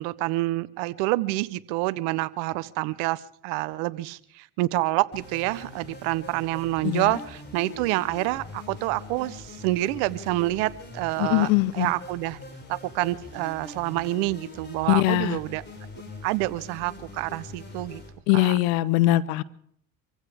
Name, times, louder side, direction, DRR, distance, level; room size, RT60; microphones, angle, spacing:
voice 1, 0.0-11.5 11.7-12.4 12.7-15.6 16.2-18.0 18.3-18.6, right 18 dB, 80° right, 19 dB, 0.8 m, -27 dB
sound 1, 5.1-18.1, left 3 dB, 25° left, 5.2 m, -43 dB
voice 2, 6.8-7.2 11.2-11.9 14.9-15.4 18.3-19.4, left 17 dB, 85° left, 19 dB, 0.8 m, -22 dB
26.0 x 15.5 x 3.4 m, 0.65 s
supercardioid pair, 75°, 40 cm